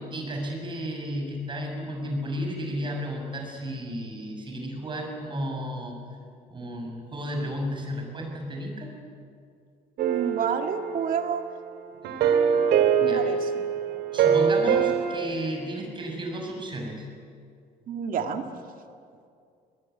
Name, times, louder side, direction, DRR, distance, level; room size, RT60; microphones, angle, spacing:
voice 1, 0.0-6.0 6.5-8.9 12.0-12.2 13.0-13.3 14.1-17.1, equal, 30° right, 2 dB, 6.4 m, -33 dB
voice 2, 10.0-11.4 13.0-13.6 17.9-18.4, right 7 dB, 55° right, 6 dB, 2.0 m, -29 dB
sound 1, 10.0-11.5 12.0-15.2, right 7 dB, 80° right, 2.2 m, -23 dB
21.5 x 20.0 x 9.3 m, 2.3 s
cardioid pair, 110°, 17 cm